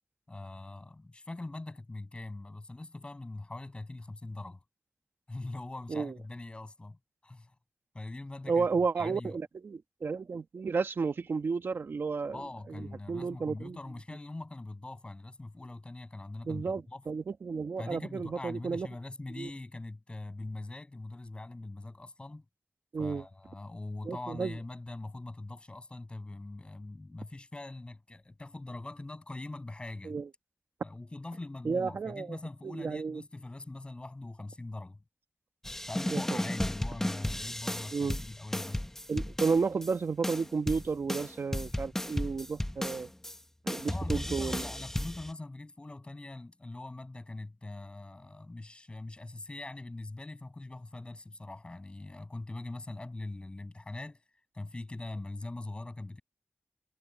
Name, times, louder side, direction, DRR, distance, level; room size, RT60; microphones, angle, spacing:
voice 1, 0.3-4.6 5.3-7.5 7.9-8.7 9.0-9.4 12.3-17.0 17.8-22.4 23.0-30.2 30.8-35.0 35.9-38.8 43.9-54.2 54.5-56.2, left 2 dB, 25° left, 6.7 m, -42 dB
voice 2, 8.5-12.4 13.1-13.8 16.4-18.9 19.4-19.5 22.9-23.2 24.0-24.5 30.1-30.2 31.6-32.4 32.6-33.2 36.1-36.2 37.9-38.2 39.1-43.1 43.6-44.6, right 4 dB, 60° right, 1.5 m, -32 dB
sound 1, 35.6-39.9 40.2-43.4 43.7-45.3, left 1 dB, 10° left, 1.2 m, -34 dB
wide cardioid pair, 110°, 4 cm